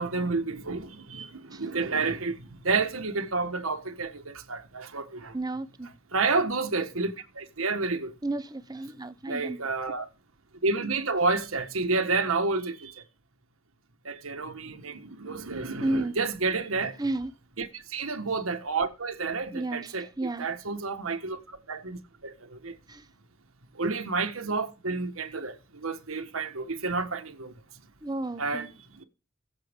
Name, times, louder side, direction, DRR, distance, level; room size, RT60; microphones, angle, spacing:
voice 1, 0.0-2.3 2.6-5.3 6.1-8.1 9.3-10.0 10.6-12.9 14.0-17.0 17.6-20.1 20.4-22.3 22.6-22.7 23.8-25.5 25.8-27.5 28.4-28.7, right 3 dB, 90° right, 1.5 m, -30 dB
voice 2, 5.3-5.9 8.2-9.6 15.8-16.2 17.0-17.3 19.5-20.5 22.9-23.1 28.0-28.7, right 2 dB, 20° right, 0.7 m, -32 dB
21.5 x 7.6 x 3.7 m
head